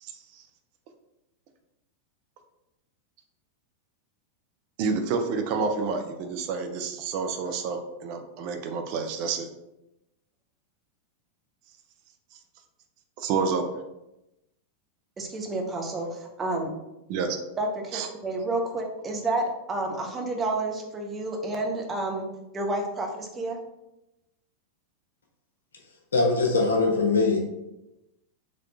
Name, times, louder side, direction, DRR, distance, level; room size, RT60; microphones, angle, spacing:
voice 1, 0.0-0.4 4.8-9.5 13.2-13.7 17.1-17.4 17.9-18.1, right 5 dB, 45° right, 6 dB, 0.5 m, -29 dB
voice 2, 15.2-16.7 17.6-22.3 22.5-23.6, right 2 dB, 20° right, 1 dB, 0.8 m, -30 dB
voice 3, 26.1-27.4, left 3 dB, 70° left, 1 dB, 0.9 m, -22 dB
4.0 x 3.0 x 3.4 m, 0.94 s
figure-of-eight pair, 90°, 0 cm